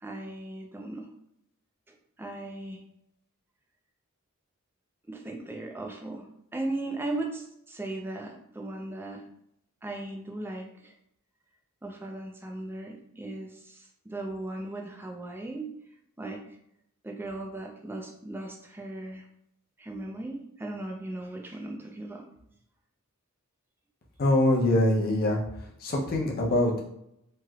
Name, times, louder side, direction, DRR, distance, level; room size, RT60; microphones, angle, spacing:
voice 1, 0.0-1.1 2.2-2.8 5.1-6.3 6.5-9.2 9.8-10.9 11.8-15.7 16.2-16.4 17.0-19.2 19.8-22.3, right 2 dB, 10° right, 1 dB, 0.4 m, -37 dB
voice 2, 24.2-25.4 25.8-26.8, left 1 dB, 45° left, -1 dB, 0.7 m, -23 dB
3.1 x 2.9 x 2.3 m, 0.76 s
head